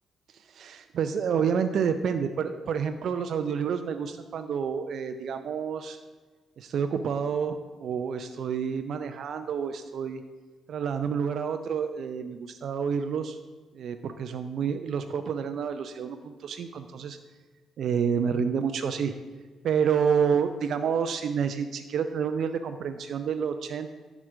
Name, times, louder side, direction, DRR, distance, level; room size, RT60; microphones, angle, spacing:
voice 1, 0.5-6.0 6.6-10.2 10.7-13.4 13.7-17.2 17.8-19.1 19.6-23.9, right 7 dB, 55° right, 8 dB, 0.4 m, -29 dB
10.0 x 6.1 x 4.9 m, 1.4 s
figure-of-eight pair, 40°, 0 cm